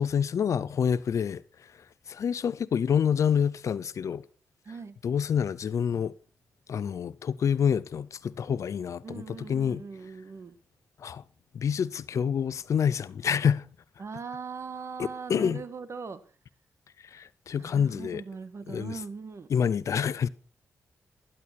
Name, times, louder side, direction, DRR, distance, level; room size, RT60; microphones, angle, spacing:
voice 1, 0.0-1.4 2.1-4.2 5.0-6.1 6.7-9.8 11.0-11.2 11.5-13.6 15.0-15.6 17.1-18.2 18.7-19.0 19.5-20.3, left 7 dB, 65° left, 0.8 m, -27 dB
voice 2, 4.6-5.0 9.0-10.6 14.0-16.2 17.6-19.5 19.9-20.0, right 5 dB, 55° right, 1.7 m, -40 dB
12.0 x 11.0 x 4.3 m
supercardioid pair, 50°, 6 cm